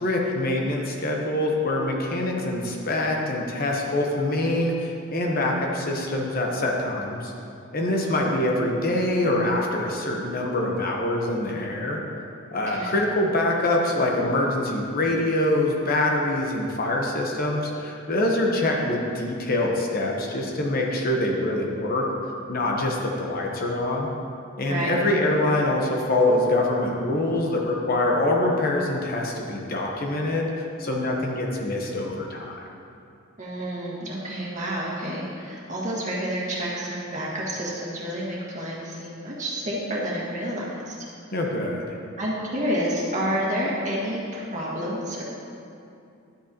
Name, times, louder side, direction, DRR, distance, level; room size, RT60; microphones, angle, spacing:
voice 1, 0.0-7.3 7.7-12.0 12.5-22.1 22.5-24.1 24.6-32.6 41.3-42.0, left 1 dB, 45° left, 0 dB, 0.9 m, -24 dB
voice 2, 24.6-24.9 33.4-41.0 42.2-45.2, equal, 35° right, -5 dB, 1.7 m, -29 dB
11.5 x 7.9 x 2.9 m, 2.6 s
head